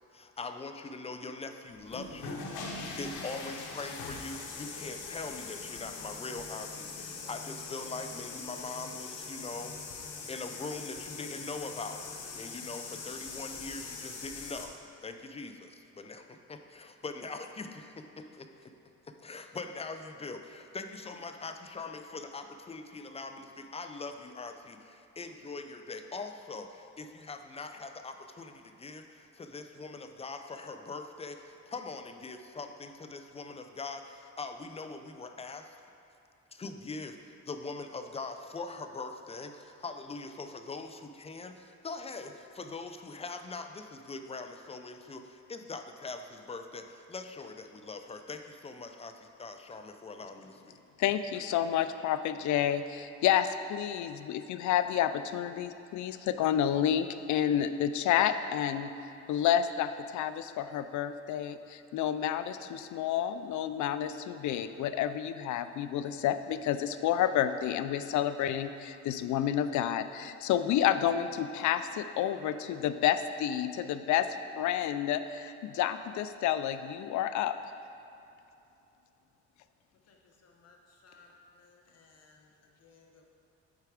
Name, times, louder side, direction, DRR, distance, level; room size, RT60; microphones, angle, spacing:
voice 1, 0.1-12.1 12.3-18.7 19.0-35.7 36.5-37.2 37.4-50.8, left 3 dB, 20° left, 6 dB, 0.5 m, -42 dB
sound 1, 1.8-14.6, left 4 dB, 90° left, 1.0 m, -42 dB
voice 2, 51.0-58.9 59.3-74.3 74.6-77.5, left 10 dB, 75° left, 11 dB, 0.5 m, -30 dB
voice 3, 80.4-80.8 81.0-81.3 81.6-82.4 82.8-83.1, left 5 dB, 55° left, 1 dB, 1.1 m, -60 dB
8.1 x 4.6 x 4.9 m, 2.8 s
cardioid pair, 90°, 30 cm